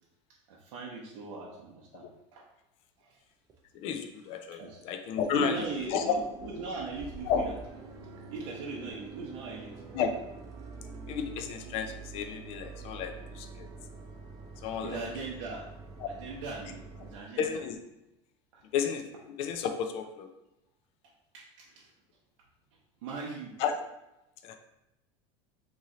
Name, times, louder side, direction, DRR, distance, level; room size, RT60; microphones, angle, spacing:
voice 1, 0.5-2.5 3.0-3.2 4.6-4.8 5.3-7.5 8.3-9.7 14.8-15.7 16.1-17.6 18.5-18.6 21.3-21.9 23.0-23.5, right 3 dB, 85° right, -4 dB, 0.7 m, -40 dB
sound 1, 3.5-3.6 4.1-4.5 4.8-4.9 5.2-5.3 5.6-17.1, right 4 dB, 25° right, 0.4 m, -46 dB
voice 2, 3.7-6.1 7.3-7.4 9.9-10.1 11.1-13.7 14.6-15.0 16.0-16.1 17.4-17.8 18.7-19.1 19.4-20.3 23.6-23.7 24.4-24.5, left 7 dB, 40° left, 6 dB, 0.4 m, -32 dB
3.1 x 2.7 x 3.7 m, 0.91 s
supercardioid pair, 165°, 16 cm